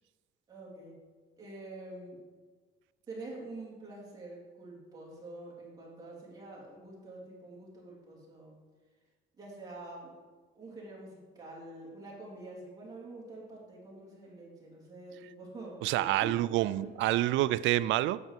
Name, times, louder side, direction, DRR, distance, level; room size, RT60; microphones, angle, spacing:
voice 1, 0.5-1.0 1.4-2.2 3.1-8.6 9.4-10.1 10.5-17.0, right 2 dB, 20° right, 3.3 m, -46 dB
voice 2, 15.8-18.2, right 15 dB, 70° right, 0.4 m, -28 dB
9.8 x 5.9 x 7.7 m
cardioid pair, 175°, 20 cm